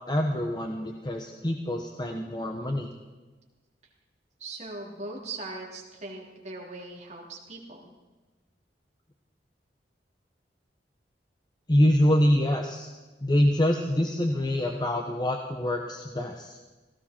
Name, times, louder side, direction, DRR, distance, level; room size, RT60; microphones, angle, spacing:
voice 1, 0.1-2.9 11.7-12.9 13.2-16.6, left 1 dB, 25° left, 3 dB, 1.0 m, -25 dB
voice 2, 4.4-7.9, right 2 dB, 40° right, -1 dB, 3.3 m, -40 dB
17.5 x 16.5 x 4.5 m, 1.2 s
head